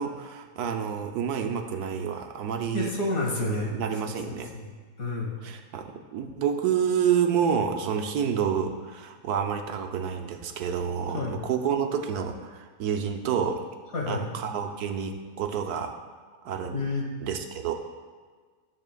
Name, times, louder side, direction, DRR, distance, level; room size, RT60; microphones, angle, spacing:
voice 1, 0.0-2.9 3.4-4.5 5.4-13.6 14.1-15.9 16.4-16.8 17.2-17.7, right 7 dB, 80° right, 5 dB, 1.2 m, -29 dB
voice 2, 2.7-3.7 4.1-4.7 5.0-5.4 11.1-11.4 13.9-14.3 16.7-17.1, left 3 dB, 60° left, -1 dB, 1.9 m, -30 dB
14.0 x 7.2 x 2.3 m, 1.5 s
omnidirectional pair, 1.6 m